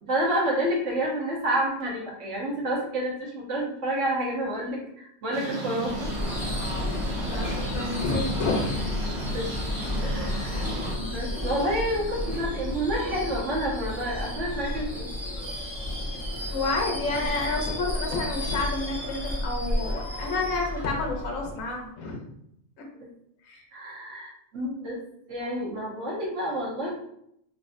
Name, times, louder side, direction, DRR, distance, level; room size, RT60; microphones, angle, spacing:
voice 1, 0.0-6.1 9.3-9.5 10.0-10.6 10.9-15.1 23.0-23.1 23.7-25.0 25.3-27.0, right 1 dB, 65° right, -3 dB, 1.2 m, -29 dB
sound 1, 5.3-11.0, right 1 dB, 40° right, 0.5 m, -35 dB
Subway metro underground / Screech, 5.8-21.8, left 1 dB, ahead, 0.8 m, -32 dB
voice 2, 7.2-8.9 16.5-22.3 22.8-22.9 23.4-23.6, left 3 dB, 75° left, 1 dB, 1.1 m, -30 dB
3.2 x 2.5 x 2.5 m, 0.75 s
omnidirectional pair, 1.4 m